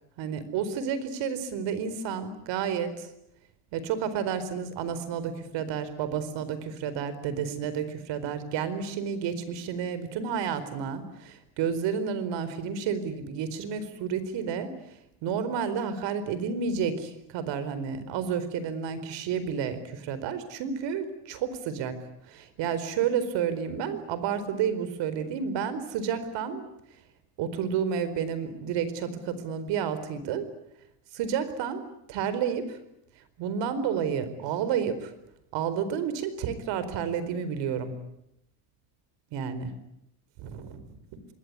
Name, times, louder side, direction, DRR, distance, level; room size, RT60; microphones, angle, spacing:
voice 1, 0.2-3.1 3.7-22.0 22.2-26.6 27.4-30.5 31.1-31.8 32.1-32.8 33.4-35.1 35.5-37.9 39.3-39.7 40.4-41.0, right 7 dB, 60° right, 13 dB, 4.5 m, -31 dB
27.0 x 21.0 x 9.7 m, 0.80 s
cardioid pair, 130°, 49 cm